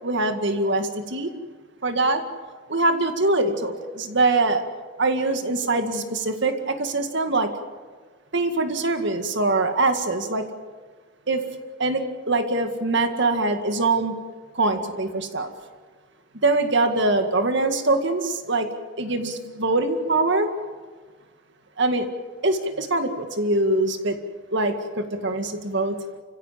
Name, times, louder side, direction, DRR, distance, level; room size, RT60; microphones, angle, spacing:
voice 1, 0.0-1.3 1.8-2.2 2.7-4.6 5.0-7.5 8.3-10.5 11.3-11.4 11.8-14.1 14.5-15.5 16.4-18.7 19.0-20.5 21.8-22.1 22.4-24.2 24.5-26.0, right 2 dB, 55° right, 7 dB, 2.0 m, -23 dB
30.0 x 16.0 x 7.5 m, 1.5 s
head